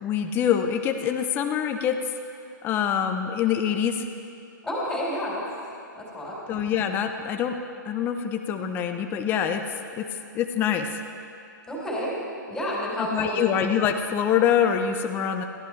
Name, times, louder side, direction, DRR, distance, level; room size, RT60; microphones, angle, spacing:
voice 1, 0.0-2.0 2.6-4.1 6.5-7.6 7.9-9.6 10.0-10.1 10.3-10.9 13.0-15.4, left 8 dB, 20° left, 5 dB, 0.7 m, -25 dB
voice 2, 4.6-5.4 5.9-6.4 11.7-12.2 12.5-13.5, equal, 5° left, -6 dB, 4.2 m, -30 dB
20.5 x 14.5 x 3.3 m, 2.5 s
hypercardioid pair, 140°, 11 cm